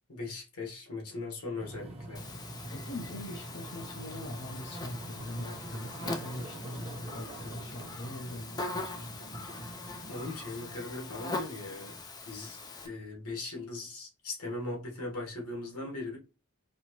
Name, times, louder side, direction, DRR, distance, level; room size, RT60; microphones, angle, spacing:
voice 1, 0.1-2.2 10.1-12.0 12.3-12.6 12.8-16.2, left 2 dB, 85° left, 1.3 m, -39 dB
sound 1, 1.6-12.0, right 1 dB, 25° right, 1.0 m, -45 dB
Buzz, 2.1-12.9, left 2 dB, 15° left, 0.4 m, -42 dB
voice 2, 2.7-9.2, left 1 dB, 55° left, 0.7 m, -42 dB
sound 2, 6.0-6.7 7.5-7.6 9.1-9.2, right 2 dB, 50° right, 0.9 m, -50 dB
4.3 x 2.7 x 2.9 m
head